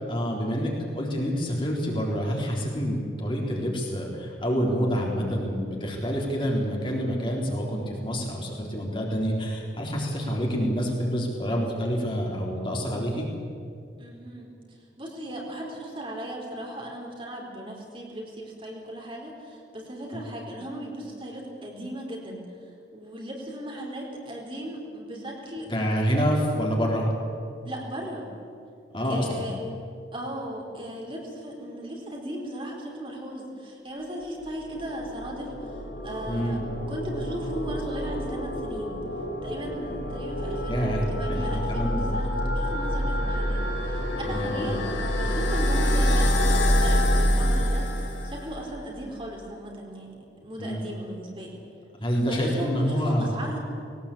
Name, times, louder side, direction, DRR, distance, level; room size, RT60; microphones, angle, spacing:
voice 1, 0.1-13.3 20.1-20.2 25.7-27.1 28.9-29.5 36.3-36.6 40.7-41.0 41.3-42.1 44.2-44.8 50.6-50.8 52.0-53.3, equal, 30° left, -2 dB, 3.7 m, -27 dB
voice 2, 14.0-22.5 22.9-26.4 27.6-28.3 29.0-29.6 30.1-36.6 36.9-39.0 39.4-50.2 50.4-51.6 52.2-53.6, right 1 dB, 30° right, -1 dB, 4.1 m, -37 dB
sound 1, 34.5-48.7, equal, 85° left, 4.7 m, -26 dB
20.5 x 19.0 x 8.6 m, 2.4 s
head